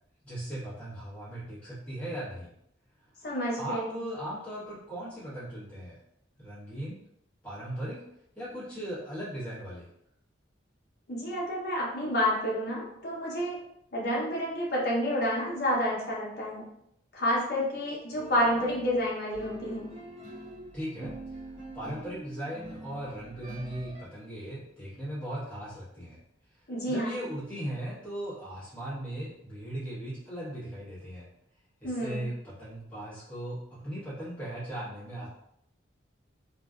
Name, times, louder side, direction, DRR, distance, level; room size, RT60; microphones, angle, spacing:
voice 1, 0.2-2.5 3.6-6.0 6.4-7.0 7.4-8.0 8.3-9.9 20.7-21.1 21.7-26.2 26.9-31.3 31.8-35.3, right 1 dB, 5° left, -12 dB, 0.9 m, -38 dB
voice 2, 3.2-4.0 11.1-13.6 13.9-16.6 17.1-19.8 26.7-27.1 31.8-32.2, equal, 55° left, -4 dB, 0.7 m, -29 dB
sound 1, 18.1-24.0, right 1 dB, 35° right, 0.5 m, -45 dB
2.6 x 2.2 x 2.3 m, 0.75 s
head